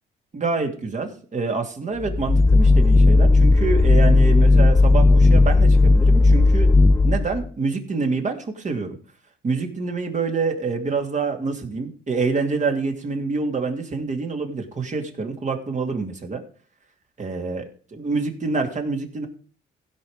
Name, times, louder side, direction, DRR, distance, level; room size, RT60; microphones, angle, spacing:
voice 1, 0.3-6.7 7.0-9.0 9.4-16.4 17.2-17.6 18.0-19.3, right 4 dB, 40° right, 4 dB, 2.7 m, -26 dB
sound 1, 2.0-7.5, left 3 dB, 15° left, 0.4 m, -15 dB
16.0 x 5.6 x 5.1 m, 0.43 s
cardioid pair, 90°, 20 cm